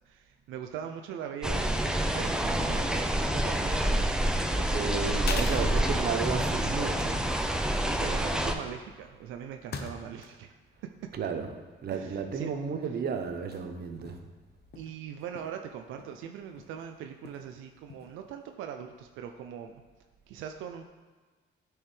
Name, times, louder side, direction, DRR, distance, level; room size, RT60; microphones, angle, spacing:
voice 1, 0.1-4.0 8.0-10.5 11.9-12.5 14.8-19.8 20.3-20.8, right 8 dB, 90° right, 5 dB, 0.4 m, -41 dB
sound 1, 1.4-8.5, right 1 dB, 5° right, 0.6 m, -28 dB
sound 2, 2.8-3.1 3.4-4.0 4.5-4.6 5.3-5.8 6.4-6.6 6.9-7.0 8.1-10.5 10.7-12.0 12.5-12.6 13.2-13.7 14.0-14.3 14.6-16.9 17.2-17.5 17.8-18.2, left 5 dB, 55° left, 0.8 m, -43 dB
voice 2, 4.5-7.2 11.1-14.2, right 6 dB, 55° right, 6 dB, 0.8 m, -33 dB
9.4 x 4.6 x 3.3 m, 1.4 s
cardioid pair, 90°, 20 cm